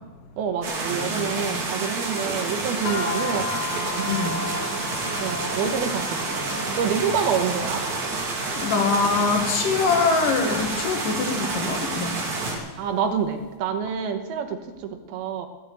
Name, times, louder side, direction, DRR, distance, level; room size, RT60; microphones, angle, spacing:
voice 1, 0.4-4.1 5.2-6.5 6.8-7.9 12.8-15.5, right 7 dB, 80° right, 7 dB, 3.1 m, -27 dB
sound 1, 0.6-12.6, right 3 dB, 55° right, 3.6 m, -29 dB
voice 2, 1.0-1.6 4.1-4.4 8.6-12.2, left 4 dB, 65° left, 4 dB, 3.2 m, -24 dB
sound 2, 2.8-13.3, left 3 dB, 40° left, 1.8 m, -36 dB
16.0 x 8.2 x 9.5 m, 1.2 s
omnidirectional pair, 4.3 m